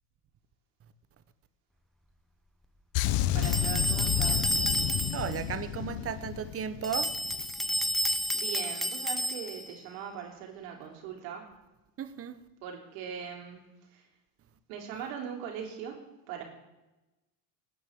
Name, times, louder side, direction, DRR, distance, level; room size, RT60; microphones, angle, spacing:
sound 1, 2.9-7.5 7.8-8.1, left 13 dB, 50° left, 0.7 m, -31 dB
voice 1, 3.3-4.4 8.1-11.5 12.6-13.6 13.9-14.1 14.7-16.0 16.3-16.4, right 8 dB, 75° right, 3.4 m, -40 dB
sound 2, 3.4-5.4 6.8-9.7, equal, ahead, 0.3 m, -30 dB
voice 2, 5.1-7.2 12.0-12.5, right 8 dB, 30° right, 0.9 m, -35 dB
19.5 x 9.6 x 3.6 m
supercardioid pair, 100°, 47 cm